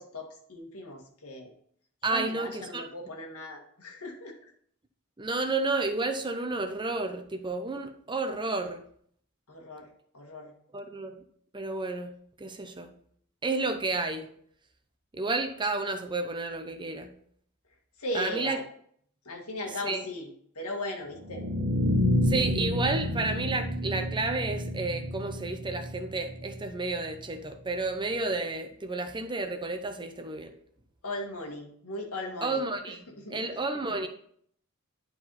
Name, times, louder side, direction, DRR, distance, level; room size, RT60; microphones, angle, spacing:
voice 1, 0.0-1.5 2.1-4.5 9.5-9.9 10.1-10.5 18.0-18.6 19.3-20.3 20.6-21.5 31.0-32.6 33.2-33.6, left 1 dB, 85° left, 2 dB, 1.8 m, -37 dB
voice 2, 2.0-2.9 5.2-8.8 10.7-11.2 11.5-12.9 13.4-14.3 15.1-17.1 18.1-18.6 19.8-20.0 22.2-30.5 32.4-34.1, right 3 dB, 20° right, 7 dB, 0.8 m, -31 dB
sound 1, 21.1-27.2, left 1 dB, 65° right, 1.2 m, -29 dB
10.5 x 4.8 x 4.1 m, 0.63 s
head